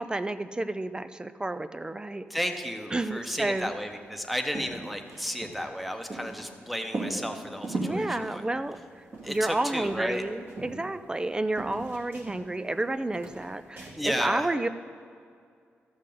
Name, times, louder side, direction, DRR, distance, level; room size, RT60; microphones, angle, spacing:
voice 1, 0.0-2.2 2.9-3.7 7.8-8.8 9.3-14.7, right 2 dB, 20° right, 12 dB, 0.4 m, -30 dB
voice 2, 2.3-8.5 9.2-10.2 14.0-14.5, equal, ahead, 6 dB, 0.9 m, -33 dB
sound 1, 2.9-3.6 3.9-4.0 4.2-6.5 6.9-8.0 8.6-9.6 9.8-11.3 11.6-12.8 13.1-14.0, right 2 dB, 55° right, 2.2 m, -38 dB
13.0 x 6.5 x 3.8 m, 2.2 s
cardioid pair, 70°, 5 cm